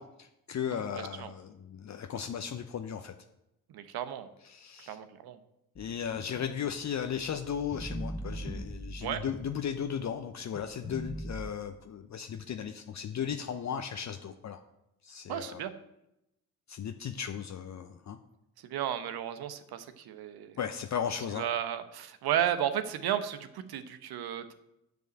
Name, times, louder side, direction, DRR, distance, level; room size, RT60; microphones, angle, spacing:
voice 1, 0.0-3.1 4.4-5.0 5.8-14.6 15.0-15.6 16.7-18.2 20.6-21.4, left 8 dB, 40° left, 6 dB, 0.8 m, -36 dB
voice 2, 0.7-1.3 3.7-4.3 4.8-5.4 9.0-9.2 15.3-15.7 18.6-20.6 21.3-24.5, right 10 dB, 55° right, 11 dB, 1.1 m, -34 dB
sound 1, 5.8-10.1 10.5-11.5, equal, 5° left, 0.5 m, -41 dB
9.3 x 5.2 x 7.7 m, 0.86 s
hypercardioid pair, 55°, 44 cm